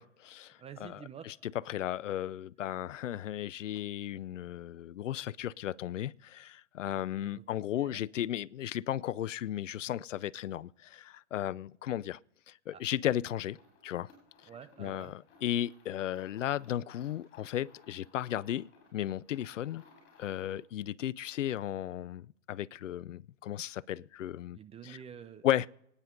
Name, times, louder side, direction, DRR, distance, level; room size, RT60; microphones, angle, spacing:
voice 1, 0.0-0.9 1.3-12.2 12.5-13.6 13.8-14.1 14.8-19.8 20.2-24.6 24.8-25.0 25.4-25.7, left 12 dB, 85° left, 0.5 m, -35 dB
voice 2, 0.6-1.3 7.3-7.4 7.7-8.0 12.7-12.8 14.5-15.1 24.5-25.7, right 8 dB, 15° right, 0.7 m, -48 dB
sound 1, 13.4-20.7, left 4 dB, 30° left, 7.9 m, -62 dB
26.0 x 9.8 x 3.8 m
hypercardioid pair, 115°, 36 cm